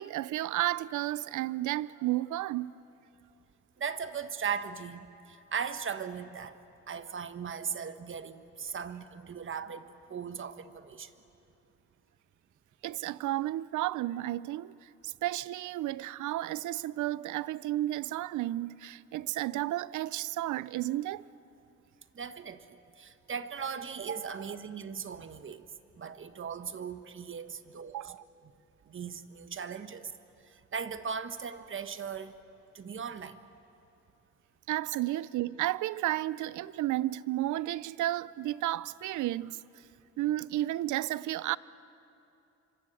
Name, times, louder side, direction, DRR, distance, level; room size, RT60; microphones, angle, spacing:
voice 1, 0.0-2.7 12.8-21.2 27.9-28.2 34.7-39.6 40.2-41.6, right 15 dB, 75° right, 0.6 m, -32 dB
voice 2, 3.8-5.0 5.5-6.6 6.9-11.1 22.1-25.7 26.0-28.1 28.9-30.1 30.7-32.3 32.7-33.4, right 6 dB, 40° right, 1.2 m, -38 dB
26.5 x 25.0 x 7.8 m
cardioid pair, 90°, 30 cm